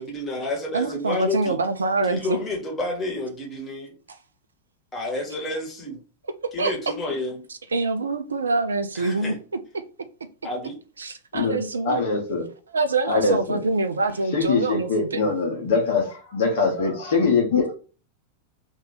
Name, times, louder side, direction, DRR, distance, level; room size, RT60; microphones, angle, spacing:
voice 1, 0.0-1.6 2.1-3.9 4.9-6.0 6.5-7.4 8.9-9.4 10.4-10.7, left 2 dB, 20° left, 1.5 m, -30 dB
voice 2, 0.7-2.4 6.6-6.7 7.7-9.3 9.7-9.8 11.0-12.0 12.7-15.5, right 3 dB, 75° right, 0.4 m, -25 dB
voice 3, 11.8-12.4 13.1-13.6 14.3-17.7, left 4 dB, 60° left, 1.1 m, -23 dB
2.8 x 2.6 x 3.9 m
figure-of-eight pair, 90°, 0 cm